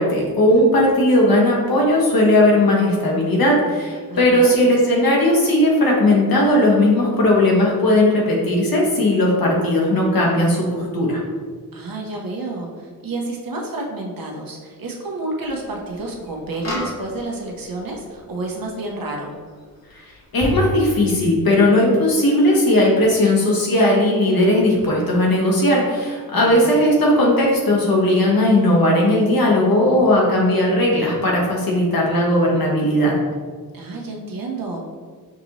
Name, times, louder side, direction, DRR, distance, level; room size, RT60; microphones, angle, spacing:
voice 1, 0.0-11.2 19.9-20.0 20.3-33.1, left 1 dB, 70° left, -2 dB, 1.2 m, -17 dB
voice 2, 4.1-4.7 11.7-19.4 26.3-26.8 33.7-34.9, right 2 dB, 70° right, -1 dB, 0.9 m, -30 dB
sound 1, 15.5-15.6 16.5-17.6 20.4-20.7, left 2 dB, 45° left, 1.3 m, -27 dB
5.9 x 2.8 x 2.9 m, 1.5 s
cardioid pair, 70°, 36 cm